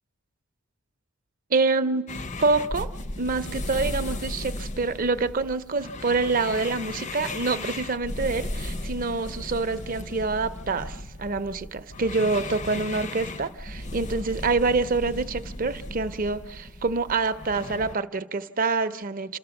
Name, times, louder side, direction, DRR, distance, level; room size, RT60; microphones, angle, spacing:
voice 1, 1.5-2.1 2.4-2.9 3.2-19.4, right 3 dB, 40° right, 0.6 m, -26 dB
sound 1, 2.1-18.0, left 2 dB, 35° left, 0.5 m, -36 dB
28.0 x 13.5 x 7.0 m
head